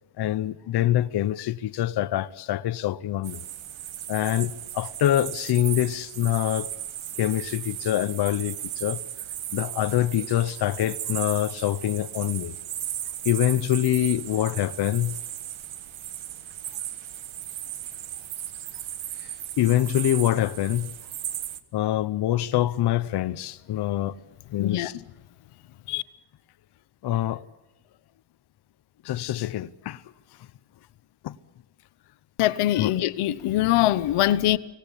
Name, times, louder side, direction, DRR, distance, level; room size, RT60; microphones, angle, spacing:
voice 1, 0.2-3.4 4.1-6.7 7.2-9.0 9.5-12.6 13.2-15.2 19.2-19.3 19.6-20.9 21.7-24.1 24.5-25.0 27.0-27.4 29.0-30.0 31.2-31.4 32.8-32.9, left 13 dB, 55° left, 0.8 m, -25 dB
sound 1, 3.2-21.6, right 11 dB, 70° right, 1.5 m, -36 dB
voice 2, 24.6-24.9 25.9-26.0 32.4-34.6, left 14 dB, 85° left, 1.1 m, -23 dB
25.0 x 17.5 x 9.9 m
cardioid pair, 150°, 49 cm